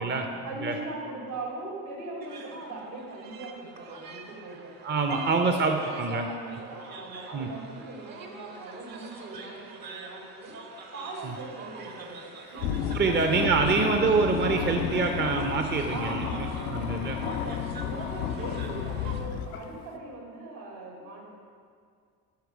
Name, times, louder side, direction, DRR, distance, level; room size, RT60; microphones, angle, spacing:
voice 1, 0.0-4.8 5.1-10.6 10.9-12.7 13.0-13.8 14.3-15.0 15.8-21.3, right 2 dB, 70° right, -2 dB, 2.5 m, -40 dB
sound 1, 2.2-19.2, right 4 dB, 50° right, 1.2 m, -46 dB
voice 2, 4.8-6.3 7.3-7.5 11.2-11.3 12.9-17.2, right 4 dB, 25° right, 4 dB, 0.7 m, -26 dB
sound 2, 12.6-19.8, left 8 dB, 70° left, 0.6 m, -32 dB
11.5 x 4.9 x 4.7 m, 2.1 s
hypercardioid pair, 55°, 45 cm